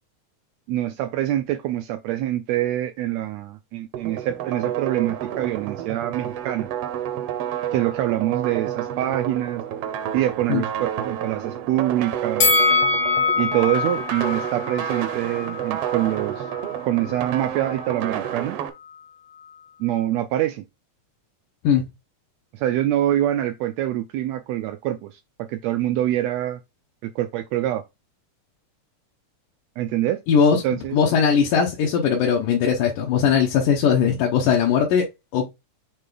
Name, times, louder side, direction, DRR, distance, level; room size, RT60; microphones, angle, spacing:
voice 1, 0.7-6.7 7.7-9.6 10.1-12.5 13.4-16.5 16.8-18.6 19.8-20.6 22.5-26.6 27.0-27.8 29.8-30.2 30.6-31.0, right 13 dB, 90° right, 1.5 m, -25 dB
sound 1, 3.9-18.7, right 10 dB, 70° right, 1.4 m, -30 dB
Bell, 12.4-15.6 15.9-16.1, left 4 dB, 60° left, 1.1 m, -22 dB
voice 2, 30.3-30.6 30.9-35.5, left 7 dB, 85° left, 2.5 m, -19 dB
7.5 x 3.3 x 3.8 m
omnidirectional pair, 3.6 m